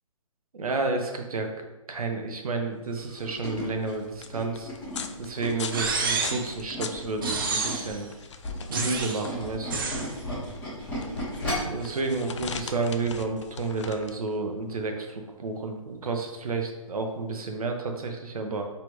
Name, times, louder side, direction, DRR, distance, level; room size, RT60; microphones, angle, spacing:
voice 1, 0.5-4.7 5.2-8.1 8.7-9.8 11.7-18.6, right 3 dB, 80° right, 4 dB, 0.9 m, -31 dB
sound 1, 2.8-17.3, left 6 dB, 55° left, 0.4 m, -42 dB
Tools, 3.0-7.9 8.3-11.8 12.2-12.4 12.7-12.8, equal, 5° left, 1.4 m, -35 dB
sound 2, 5.7-6.5 7.2-8.0 8.7-9.2 9.7-10.1, right 4 dB, 35° right, 0.5 m, -29 dB
5.0 x 3.3 x 3.1 m, 1.0 s
hypercardioid pair, 170°, 18 cm